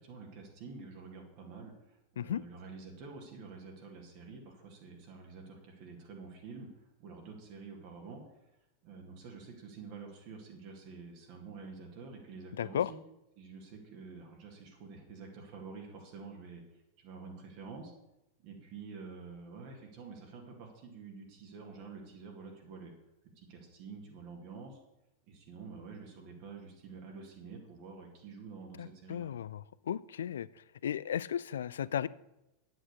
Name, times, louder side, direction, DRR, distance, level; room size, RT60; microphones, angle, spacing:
voice 1, 0.0-8.2 8.8-13.0 13.4-17.9 18.4-22.9 23.4-24.8 25.3-29.3, right 4 dB, 45° right, 1 dB, 2.2 m, -48 dB
voice 2, 12.6-12.9 28.8-30.5 30.8-32.1, left 9 dB, 65° left, 20 dB, 0.4 m, -35 dB
9.9 x 8.0 x 6.6 m, 0.92 s
figure-of-eight pair, 90°, 0 cm